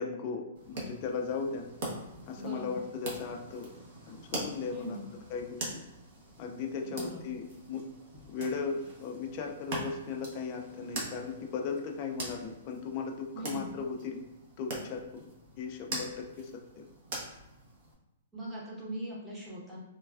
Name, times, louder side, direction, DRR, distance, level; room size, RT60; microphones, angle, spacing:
voice 1, 0.0-1.7 2.3-3.7 4.1-5.0 5.3-5.8 6.4-7.8 8.3-14.2 14.6-15.3 15.6-16.8, left 5 dB, 35° left, 2 dB, 0.4 m, -37 dB
sound 1, 0.6-17.9, right 1 dB, 50° right, 0.9 m, -43 dB
voice 2, 2.4-2.8 4.7-5.1 6.9-7.2 13.3-13.7 18.3-19.8, right 1 dB, 10° right, -6 dB, 0.9 m, -40 dB
3.2 x 2.2 x 2.4 m, 0.99 s
hypercardioid pair, 150°, 0 cm